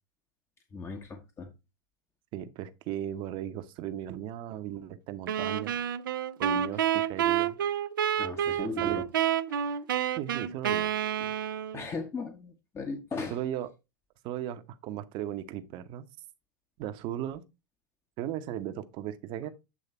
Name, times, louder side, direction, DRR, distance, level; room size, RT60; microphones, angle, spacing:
voice 1, 0.7-1.5 7.3-7.4 8.2-9.1 9.5-9.8 11.2-11.3 11.7-13.4, left 4 dB, 25° left, 1.1 m, -38 dB
voice 2, 2.3-5.8 6.4-7.6 8.6-9.0 10.1-10.9 13.3-13.7 14.2-16.0 16.8-17.4 18.2-19.5, right 11 dB, 50° right, 0.9 m, -36 dB
sound 1, 5.3-11.8, right 9 dB, 80° right, 0.5 m, -29 dB
8.4 x 3.2 x 4.3 m
hypercardioid pair, 95°, 11 cm